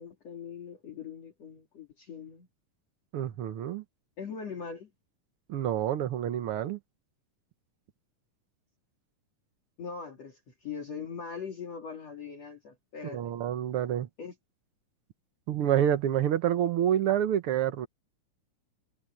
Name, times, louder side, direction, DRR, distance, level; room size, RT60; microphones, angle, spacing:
voice 1, 0.0-2.5 4.2-4.9 9.8-13.3 14.2-14.4, left 6 dB, 50° left, 3.5 m, -41 dB
voice 2, 3.1-3.8 5.5-6.8 13.0-14.1 15.5-17.9, right 10 dB, 70° right, 1.3 m, -28 dB
omnidirectional pair, 4.0 m